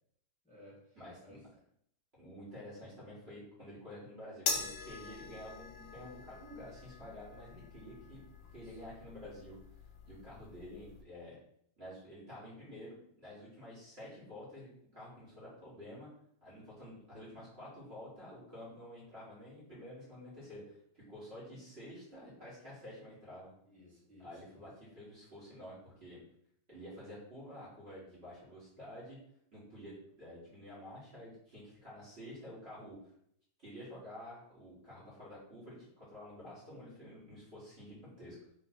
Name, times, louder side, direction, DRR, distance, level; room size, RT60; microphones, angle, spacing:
voice 1, 0.4-1.4 8.4-8.8 23.7-24.6, left 1 dB, 5° left, -8 dB, 1.3 m, -59 dB
voice 2, 0.9-1.4 2.2-8.2 8.5-9.6 10.0-11.4 11.8-16.1 16.4-23.5 24.2-26.2 26.7-29.2 29.5-33.0 33.6-38.4, equal, 35° right, -7 dB, 1.6 m, -50 dB
sound 1, 4.5-11.0, left 4 dB, 70° left, 1.3 m, -43 dB
3.5 x 3.2 x 4.2 m, 0.71 s
omnidirectional pair, 2.1 m